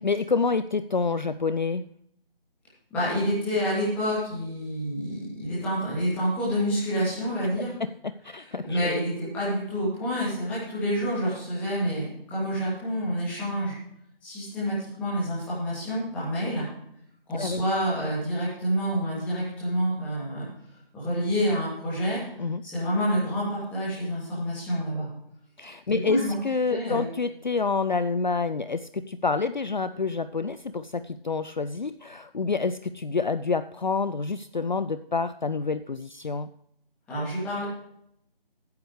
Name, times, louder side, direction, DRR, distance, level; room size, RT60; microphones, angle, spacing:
voice 1, 0.0-1.9 7.8-8.8 17.3-17.6 22.4-22.7 25.6-36.5, left 4 dB, 50° left, 12 dB, 0.4 m, -28 dB
voice 2, 2.9-7.7 8.4-13.7 14.2-16.6 17.3-20.5 20.9-22.2 22.6-25.1 25.9-26.3 26.7-27.0 37.1-37.6, equal, 5° left, -9 dB, 2.5 m, -28 dB
14.5 x 9.5 x 3.2 m, 0.71 s
figure-of-eight pair, 165°, 29 cm